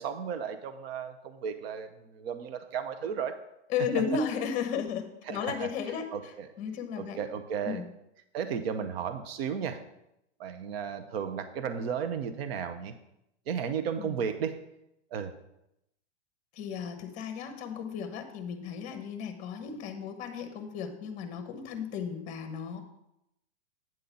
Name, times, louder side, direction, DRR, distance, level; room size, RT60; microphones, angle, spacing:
voice 1, 0.0-3.4 5.3-5.7 6.1-6.5 7.0-7.8 8.3-9.8 10.4-12.9 13.5-14.6 15.1-15.3, right 7 dB, 60° right, 9 dB, 0.8 m, -34 dB
voice 2, 3.7-7.2 7.6-7.8 14.0-14.1 16.5-22.8, left 6 dB, 20° left, 7 dB, 0.9 m, -34 dB
9.0 x 3.9 x 7.0 m, 0.84 s
supercardioid pair, 160°, 34 cm